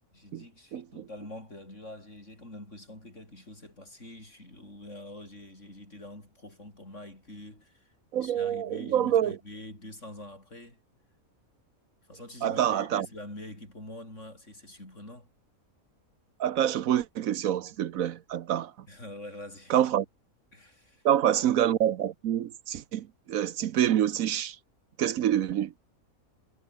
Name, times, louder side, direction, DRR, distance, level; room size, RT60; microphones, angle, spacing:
voice 1, 0.1-7.9 8.2-10.8 12.1-15.3 18.9-19.8 20.5-21.0, left 1 dB, 55° left, 8.6 m, -45 dB
voice 2, 0.7-1.0 8.1-9.4 12.4-13.1 16.4-18.7 19.7-20.0 21.0-24.6 25.0-25.7, right 10 dB, 75° right, 1.2 m, -26 dB
omnidirectional pair, 1.5 m